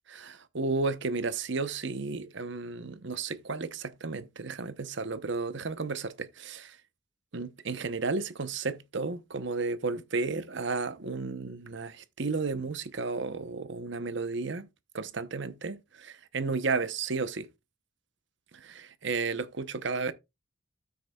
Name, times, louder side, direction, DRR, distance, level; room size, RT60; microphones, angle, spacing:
voice 1, 0.1-6.8 7.3-14.7 14.9-17.5 19.0-20.1, right 4 dB, 60° right, 0.9 m, -33 dB
12.5 x 6.6 x 2.3 m
head